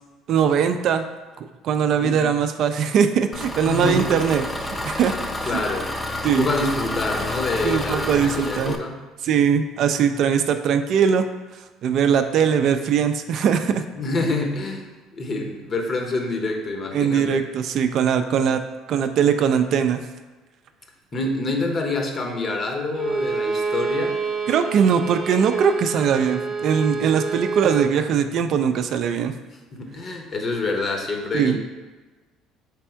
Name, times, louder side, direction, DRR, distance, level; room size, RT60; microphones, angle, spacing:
voice 1, 0.3-1.0 1.6-4.4 4.8-5.1 5.4-5.6 6.2-6.5 7.6-8.8 9.2-11.3 11.8-13.8 16.9-18.6 18.9-20.0 24.5-29.3 31.3-31.6, right 7 dB, 60° right, 8 dB, 0.3 m, -20 dB
Engine, 3.3-8.8, left 1 dB, 20° left, 0.5 m, -29 dB
voice 2, 3.7-4.2 5.5-5.9 6.2-8.9 14.0-17.4 21.1-24.2 29.7-31.6, left 2 dB, 40° left, 3 dB, 0.8 m, -26 dB
Bowed string instrument, 22.9-28.0, right 4 dB, 35° right, 0.8 m, -27 dB
3.4 x 3.4 x 4.4 m, 1.3 s
supercardioid pair, 85°, 0 cm